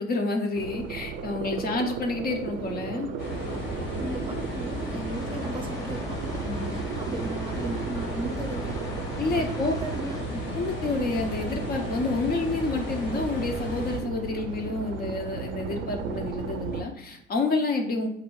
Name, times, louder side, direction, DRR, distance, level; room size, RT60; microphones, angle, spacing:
voice 1, 0.0-3.1 6.5-6.7 9.2-9.7 10.3-18.1, left 3 dB, 50° left, 4 dB, 0.7 m, -29 dB
sound 1, 0.6-16.8, right 6 dB, 75° right, 0.4 m, -35 dB
voice 2, 1.5-2.0 4.0-9.0 9.4-10.3, right 2 dB, 25° right, 4 dB, 0.6 m, -37 dB
sound 2, 3.2-14.0, left 1 dB, 75° left, 1.4 m, -34 dB
sound 3, 5.1-10.2, left 2 dB, 15° left, 0.4 m, -46 dB
4.0 x 2.6 x 3.0 m, 0.82 s
cardioid pair, 90°, 20 cm